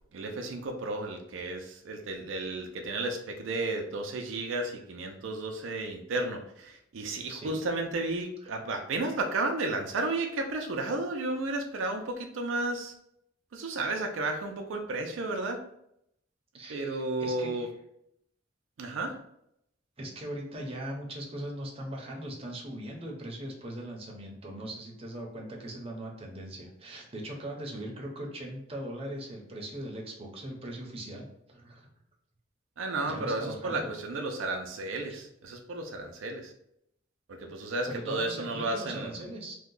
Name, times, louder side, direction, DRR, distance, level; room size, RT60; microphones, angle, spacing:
voice 1, 0.1-12.9 13.5-15.6 16.7-17.7 18.8-19.2 32.8-36.5 37.4-39.2, right 2 dB, 85° right, 3 dB, 0.5 m, -33 dB
voice 2, 16.6-17.7 20.0-31.9 33.1-33.9 35.1-35.2 37.9-39.6, right 1 dB, 30° right, -1 dB, 0.7 m, -40 dB
2.7 x 2.2 x 3.7 m, 0.75 s
head